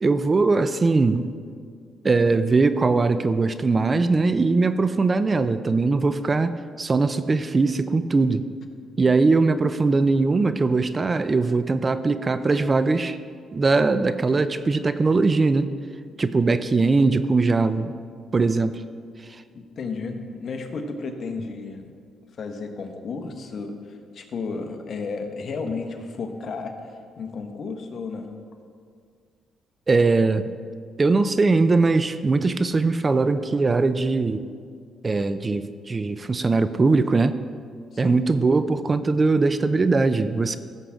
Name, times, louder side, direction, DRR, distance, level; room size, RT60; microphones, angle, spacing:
voice 1, 0.0-1.3 2.0-8.4 9.0-13.2 13.5-15.7 16.2-17.9 18.3-18.8 29.9-30.5 31.0-34.4 35.0-37.4 38.0-40.6, right 3 dB, 30° right, 12 dB, 0.4 m, -21 dB
voice 2, 19.5-21.9 22.4-26.7 27.2-28.3 37.9-38.2, left 4 dB, 55° left, 5 dB, 1.2 m, -33 dB
16.0 x 7.4 x 3.6 m, 2.1 s
cardioid pair, 90°, 0 cm